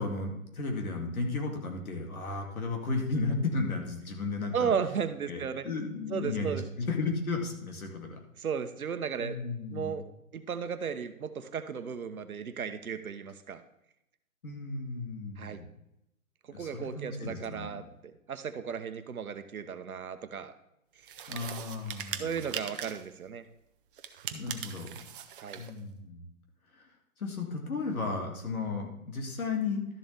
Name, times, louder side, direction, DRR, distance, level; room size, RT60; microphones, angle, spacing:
voice 1, 0.0-4.7 5.3-8.2 9.2-10.0 14.4-15.6 16.5-17.8 21.3-22.3 24.3-25.0 25.5-26.2 27.2-29.9, left 3 dB, 75° left, 1 dB, 2.6 m, -34 dB
voice 2, 4.5-5.7 6.1-6.6 8.4-9.4 9.7-10.0 10.3-13.6 15.4-15.6 16.5-20.5 21.0-21.1 22.2-23.5 25.4-25.6, right 7 dB, 75° right, 10 dB, 1.1 m, -35 dB
sound 1, 21.1-23.1 24.0-25.7, right 9 dB, 40° right, 0.8 m, -40 dB
12.5 x 7.1 x 3.4 m, 0.82 s
hypercardioid pair, 135°, 43 cm